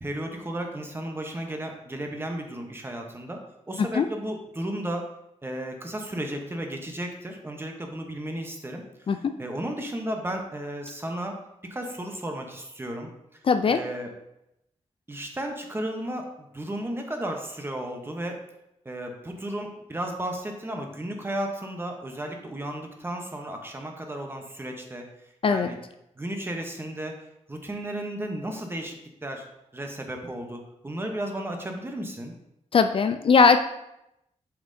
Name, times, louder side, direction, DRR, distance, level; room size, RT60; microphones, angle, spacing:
voice 1, 0.0-3.4 3.7-5.0 5.4-11.4 11.6-13.4 13.7-14.1 15.1-18.4 18.8-25.1 25.4-25.8 26.2-27.2 27.5-29.0 29.2-29.5 29.7-32.3, right 1 dB, 20° right, 3 dB, 0.9 m, -34 dB
voice 2, 13.5-13.8 25.4-25.7 32.7-33.6, left 5 dB, 50° left, 9 dB, 0.4 m, -19 dB
6.7 x 5.5 x 2.7 m, 0.84 s
wide cardioid pair, 120°, 12 cm